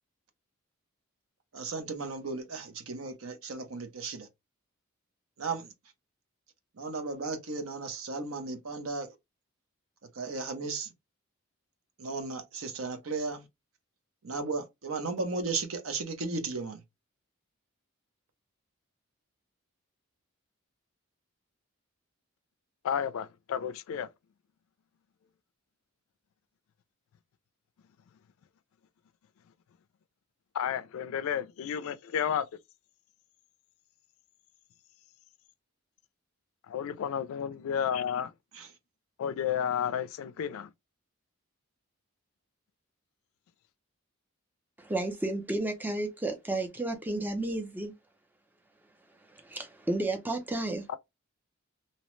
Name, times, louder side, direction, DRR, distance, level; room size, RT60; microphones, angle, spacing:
voice 1, 1.5-4.3 5.4-5.7 6.8-9.1 10.2-10.9 12.0-13.4 14.2-16.8 38.6-38.7, right 3 dB, 70° right, 0.6 m, -35 dB
voice 2, 22.8-24.1 30.5-32.5 36.7-38.3 39.2-40.7 50.9-51.0, left 8 dB, 70° left, 0.3 m, -31 dB
voice 3, 44.8-47.9 49.2-50.9, right 2 dB, 10° right, 0.4 m, -32 dB
2.7 x 2.0 x 3.0 m
head